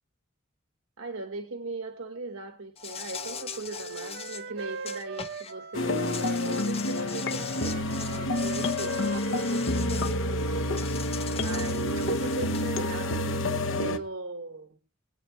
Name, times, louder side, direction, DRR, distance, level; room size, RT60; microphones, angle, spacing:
voice 1, 1.0-10.8 11.4-13.4 13.8-14.7, right 3 dB, 75° right, 7 dB, 1.3 m, -39 dB
Insect, 2.8-5.5 5.9-10.2 10.8-12.7, left 7 dB, 30° left, 0.8 m, -41 dB
Wind instrument woodwind instrument, 3.2-6.7 6.9-10.5, right 5 dB, 55° right, 0.6 m, -41 dB
sound 1, 5.7-14.0, left 1 dB, 65° left, 0.9 m, -28 dB
22.0 x 8.6 x 3.1 m, 0.34 s
head